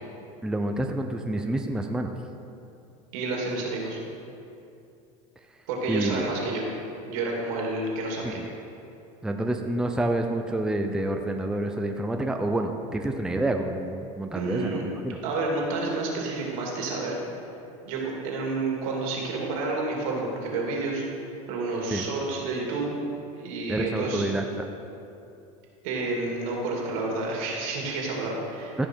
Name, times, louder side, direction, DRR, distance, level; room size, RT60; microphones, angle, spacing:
voice 1, 0.4-2.1 5.9-6.3 8.2-8.4 9.2-15.2 21.9-22.1 23.7-24.7 28.8-28.9, right 1 dB, 5° right, 4 dB, 0.5 m, -28 dB
voice 2, 3.1-4.0 5.7-6.6 7.1-8.4 14.3-14.9 15.2-17.2 17.8-23.0 23.3-24.2 25.8-28.8, right 3 dB, 75° right, -1 dB, 2.5 m, -30 dB
14.5 x 5.3 x 4.5 m, 2.7 s
supercardioid pair, 115°, 18 cm